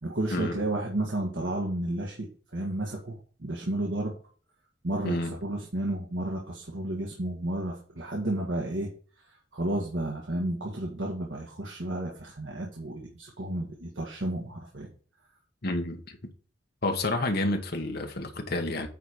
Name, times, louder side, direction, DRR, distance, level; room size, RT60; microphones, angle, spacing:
voice 1, 0.0-4.1 4.8-8.9 9.3-14.9, right 1 dB, 75° right, 1.6 m, -32 dB
voice 2, 5.0-5.3 15.6-16.2 16.8-18.9, left 2 dB, 55° left, 1.4 m, -29 dB
9.3 x 4.1 x 5.0 m
head